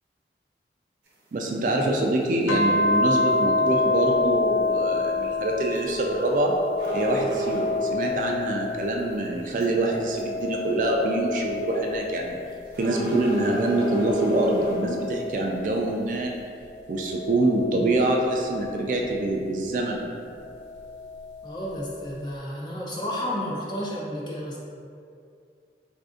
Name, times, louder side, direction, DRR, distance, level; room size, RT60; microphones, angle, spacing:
sound 1, 1.1-1.2 2.8-3.0 3.3-3.4 3.7-3.8 5.7-5.9 6.2-6.3 6.8-8.0 9.0-9.1 9.6-9.7 10.2-10.4 10.9-11.0 12.7-14.9, equal, 80° right, 0.8 m, -32 dB
voice 1, 1.3-6.6 6.9-12.4 12.8-16.3 16.9-20.2, right 2 dB, 45° right, 0 dB, 0.3 m, -25 dB
sound 2, 2.5-9.2 9.6-12.5 13.1-15.9 16.7-19.1 20.5-21.5, left 2 dB, 80° left, 0.3 m, -28 dB
voice 2, 21.4-24.6, equal, 25° left, -5 dB, 0.5 m, -31 dB
3.3 x 2.5 x 3.6 m, 2.4 s
head